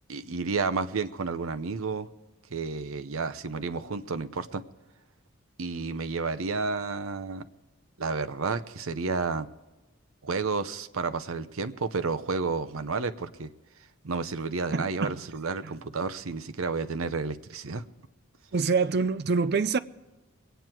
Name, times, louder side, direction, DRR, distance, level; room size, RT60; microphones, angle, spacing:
voice 1, 0.1-2.1 2.5-4.6 5.6-7.4 8.0-9.5 10.2-13.5 14.0-17.8, right 4 dB, 80° right, 0.8 m, -31 dB
voice 2, 14.7-15.2 15.6-15.7 18.5-19.8, right 4 dB, 50° right, 0.5 m, -26 dB
23.0 x 9.3 x 4.5 m
head